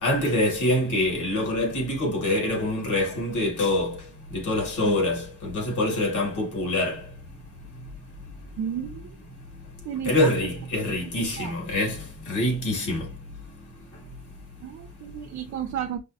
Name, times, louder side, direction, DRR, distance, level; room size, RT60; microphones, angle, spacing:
voice 1, 0.0-4.0 4.3-7.0 10.0-13.0, left 1 dB, 75° left, 2.2 m, -25 dB
voice 2, 8.6-9.0 9.9-10.3 11.4-11.5 14.6-16.0, right 9 dB, 60° right, 0.6 m, -32 dB
5.3 x 2.0 x 2.8 m
cardioid pair, 90°, 30 cm